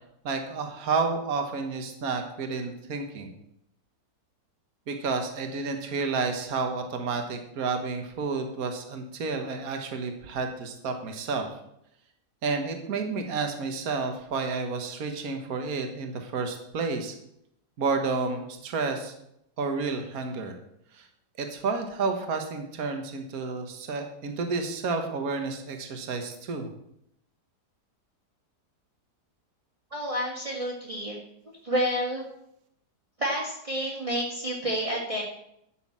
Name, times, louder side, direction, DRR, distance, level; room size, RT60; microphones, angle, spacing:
voice 1, 0.2-3.3 4.9-11.5 12.4-17.2 17.8-19.1 19.6-20.5 20.9-21.1 21.4-26.7, right 4 dB, 60° right, 5 dB, 1.8 m, -30 dB
voice 2, 29.9-31.2 31.6-32.2 33.2-35.2, equal, 20° right, -5 dB, 2.0 m, -29 dB
12.0 x 6.3 x 7.4 m, 0.77 s
omnidirectional pair, 1.8 m